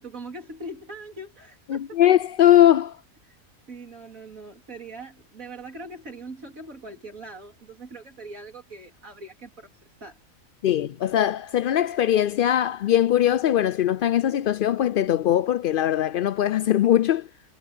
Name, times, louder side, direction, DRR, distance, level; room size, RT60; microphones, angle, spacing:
voice 1, 0.0-2.0 3.2-3.4 3.7-10.2, right 2 dB, 70° right, 4.0 m, -41 dB
voice 2, 1.7-3.0 10.6-17.3, left 11 dB, 75° left, 0.5 m, -20 dB
omnidirectional pair, 1.5 m